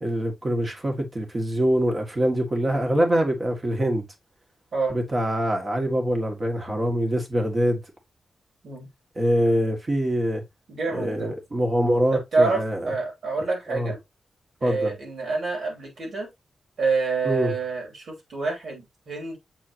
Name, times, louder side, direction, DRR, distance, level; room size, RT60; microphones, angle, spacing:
voice 1, 0.0-4.0 4.9-7.8 9.2-10.4 10.9-12.9 13.7-13.9 14.6-14.9 17.2-17.5, equal, 30° right, 1.9 m, -24 dB
voice 2, 10.7-11.3 12.1-14.0 14.6-16.3 16.8-19.4, right 3 dB, 70° right, 3.0 m, -27 dB
7.6 x 4.2 x 2.9 m
wide cardioid pair, 115°, 0 cm